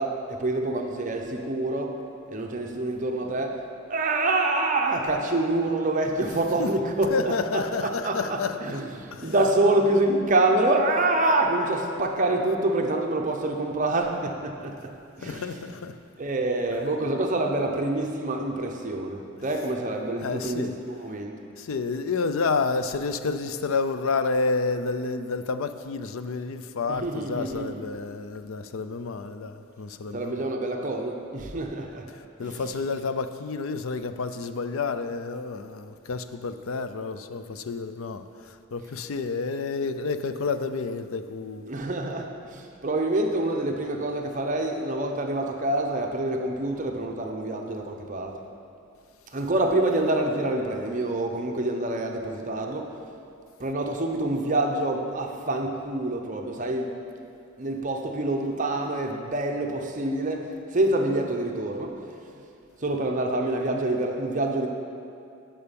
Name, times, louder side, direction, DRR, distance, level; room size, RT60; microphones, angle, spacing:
voice 1, 0.0-2.0 2.3-3.6 3.9-8.2 8.6-14.8 15.2-15.6 16.2-21.4 27.0-27.8 30.1-32.1 32.4-32.6 41.7-48.4 49.3-52.9 53.6-57.0 57.6-62.0 62.8-64.7, right 2 dB, 35° right, 0.7 m, -26 dB
voice 2, 7.1-8.8 9.1-9.3 15.2-16.0 20.2-20.8 21.6-30.4 32.1-41.7, left 4 dB, 70° left, 0.5 m, -30 dB
11.0 x 5.7 x 5.3 m
head